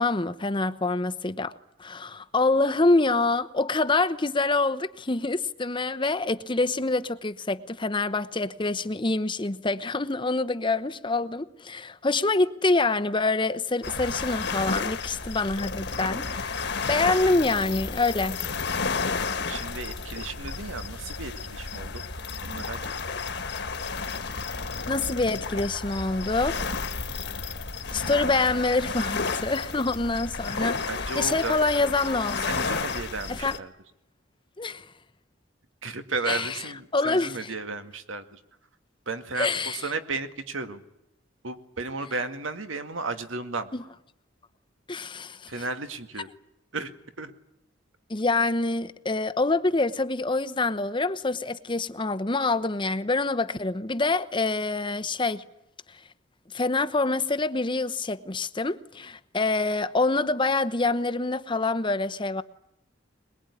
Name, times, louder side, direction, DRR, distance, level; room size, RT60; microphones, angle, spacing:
voice 1, 0.0-1.5 1.8-18.4 24.9-26.6 27.9-30.9 31.1-32.5 33.3-33.5 34.6-34.9 36.3-36.6 36.9-37.5 39.4-39.8 43.7-43.8 44.9-45.5 48.1-55.4 56.5-62.4, left 3 dB, 25° left, 0.9 m, -26 dB
sound 1, 13.8-33.6, left 4 dB, 60° left, 1.8 m, -32 dB
voice 2, 19.5-22.1 22.4-22.8 30.9-31.6 32.4-33.7 35.8-38.4 39.1-40.8 41.4-43.7 45.5-46.3 46.7-46.9 47.2-47.3, right 3 dB, 85° right, 2.1 m, -34 dB
22.0 x 21.5 x 9.8 m
head